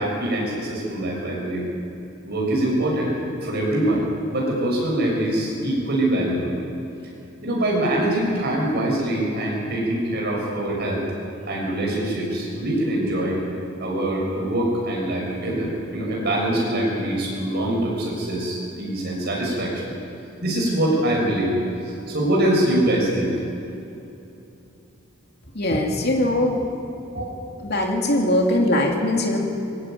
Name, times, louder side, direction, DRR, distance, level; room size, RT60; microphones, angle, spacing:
voice 1, 0.0-1.6 2.2-3.1 3.4-6.5 7.4-11.0 11.5-13.4 13.8-19.9 20.4-21.5 21.8-23.4 27.1-27.3, right 1 dB, 50° right, -3 dB, 7.0 m, -24 dB
voice 2, 25.5-26.6 27.6-29.4, left 1 dB, 50° left, 1 dB, 2.9 m, -21 dB
20.5 x 15.5 x 9.4 m, 2.9 s
head